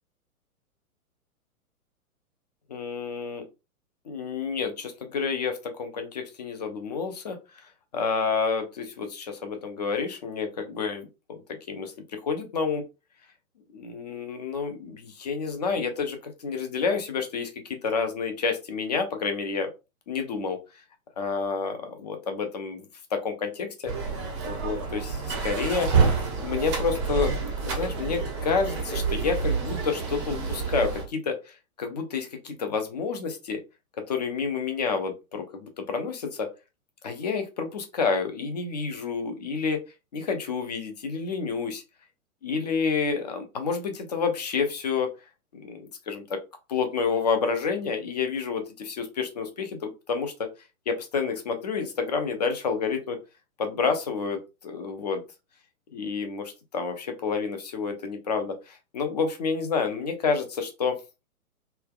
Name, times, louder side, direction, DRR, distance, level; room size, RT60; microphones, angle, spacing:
voice 1, 2.7-3.4 4.1-11.4 11.7-12.8 13.7-19.7 20.1-20.6 21.2-22.8 23.1-23.9 24.4-25.9 26.4-27.3 27.6-33.6 34.1-36.5 37.0-39.8 40.1-41.8 42.4-45.1 45.5-46.2 46.7-50.3 50.9-53.2 53.6-55.2 55.9-61.0, left 5 dB, 30° left, 6 dB, 0.4 m, -29 dB
sound 1, 23.9-31.0, right 5 dB, 20° right, 0.5 m, -28 dB
3.2 x 2.2 x 2.2 m, 0.27 s
figure-of-eight pair, 115°, 44 cm